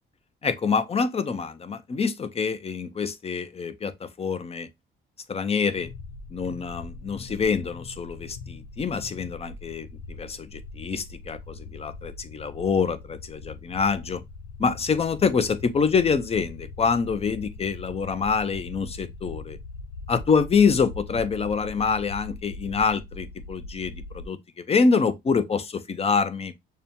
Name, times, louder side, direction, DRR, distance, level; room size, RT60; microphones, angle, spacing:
voice 1, 0.4-4.7 5.3-5.9 6.3-14.2 14.6-19.6 20.1-24.4 24.7-26.5, left 5 dB, 30° left, 0.5 m, -26 dB
sound 1, 5.7-24.3, left 3 dB, 80° left, 0.6 m, -41 dB
6.6 x 2.3 x 2.7 m
cardioid pair, 90°, 20 cm